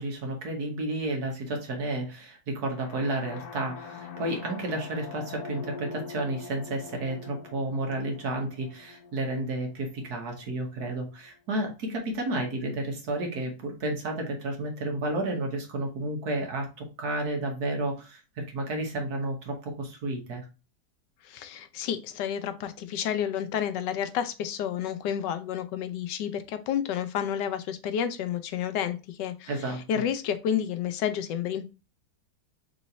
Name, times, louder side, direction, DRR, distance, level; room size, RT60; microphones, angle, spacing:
voice 1, 0.0-20.4 29.5-29.8, right 1 dB, 65° right, 2 dB, 1.7 m, -31 dB
sound 1, 2.7-10.6, left 5 dB, 65° left, 1.3 m, -44 dB
voice 2, 21.2-29.5 29.9-31.6, left 9 dB, 90° left, 10 dB, 1.3 m, -30 dB
3.9 x 3.1 x 4.0 m, 0.30 s
omnidirectional pair, 1.8 m